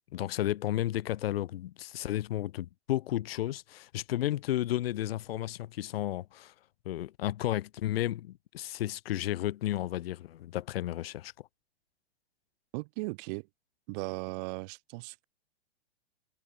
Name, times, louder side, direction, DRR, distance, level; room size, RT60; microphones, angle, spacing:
voice 1, 0.1-6.5 6.8-11.3, left 13 dB, 60° left, 0.9 m, -33 dB
voice 2, 12.7-13.5 13.9-15.2, right 30 dB, 40° right, 1.5 m, -37 dB
hypercardioid pair, 130°, 33 cm